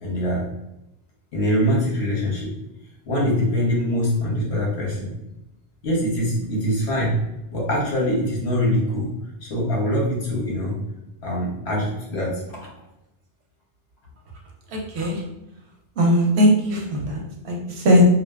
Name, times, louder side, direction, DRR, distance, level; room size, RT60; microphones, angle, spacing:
voice 1, 0.0-0.5 1.3-2.5 3.0-5.1 5.8-7.2 7.5-9.1 9.4-10.8 11.2-12.4, equal, 80° left, -4 dB, 1.1 m, -23 dB
voice 2, 16.0-18.0, equal, 90° right, 0 dB, 0.9 m, -19 dB
2.6 x 2.3 x 2.2 m, 0.90 s
omnidirectional pair, 1.1 m